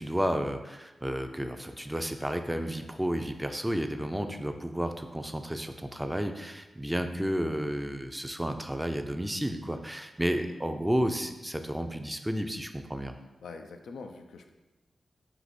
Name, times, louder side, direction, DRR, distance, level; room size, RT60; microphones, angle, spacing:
voice 1, 0.0-13.2, equal, 10° right, 7 dB, 0.4 m, -32 dB
voice 2, 13.4-14.5, left 4 dB, 85° left, 5 dB, 0.3 m, -44 dB
4.7 x 2.5 x 4.1 m, 1.1 s
cardioid pair, 45°, 0 cm